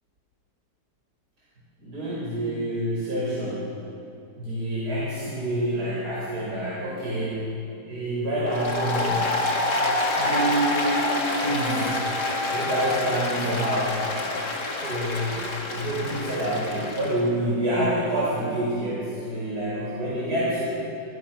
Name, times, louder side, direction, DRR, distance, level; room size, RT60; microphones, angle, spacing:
voice 1, 1.8-3.7 4.4-7.5 7.8-9.2 10.1-11.1 11.4-11.9 12.4-14.0 14.8-20.7, right 1 dB, 70° right, -7 dB, 6.1 m, -27 dB
Applause, 8.5-17.2, left 2 dB, 75° left, 3.2 m, -27 dB
28.5 x 24.0 x 6.1 m, 2.8 s
omnidirectional pair, 1.8 m